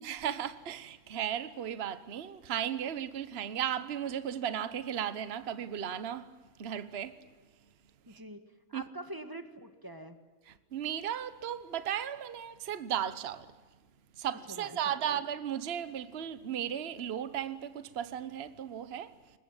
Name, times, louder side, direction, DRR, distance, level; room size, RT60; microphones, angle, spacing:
voice 1, 0.0-6.3 6.6-7.3 8.1-8.2 8.7-8.9 10.7-13.5 14.2-19.1, right 9 dB, 50° right, 1.2 m, -35 dB
voice 2, 8.1-8.4 8.7-10.2 14.5-15.2, right 1 dB, 15° right, 1.8 m, -45 dB
23.0 x 20.5 x 8.9 m
omnidirectional pair, 1.6 m